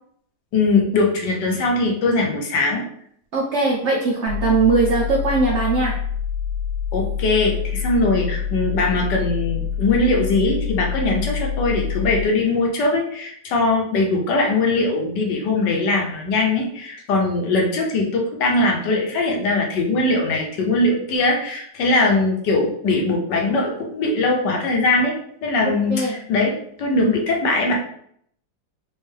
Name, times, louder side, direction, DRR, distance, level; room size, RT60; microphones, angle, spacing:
voice 1, 0.5-2.8 6.9-25.1 25.4-27.7, left 2 dB, 70° left, 0 dB, 1.4 m, -21 dB
voice 2, 3.3-5.9 25.9-26.2, right 3 dB, 75° right, -2 dB, 0.6 m, -20 dB
sound 1, 4.3-12.3, left 8 dB, 60° right, 1.9 m, -26 dB
4.4 x 2.6 x 3.2 m, 0.65 s
omnidirectional pair, 2.0 m